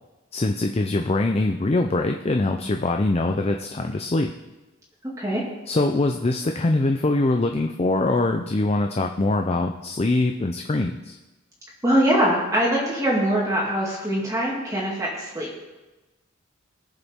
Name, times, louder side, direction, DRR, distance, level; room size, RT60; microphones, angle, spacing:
voice 1, 0.3-4.3 5.7-11.2, left 2 dB, 30° left, 4 dB, 0.5 m, -23 dB
voice 2, 11.8-15.5, equal, 15° right, -5 dB, 2.1 m, -22 dB
21.0 x 7.0 x 3.6 m, 1.1 s
head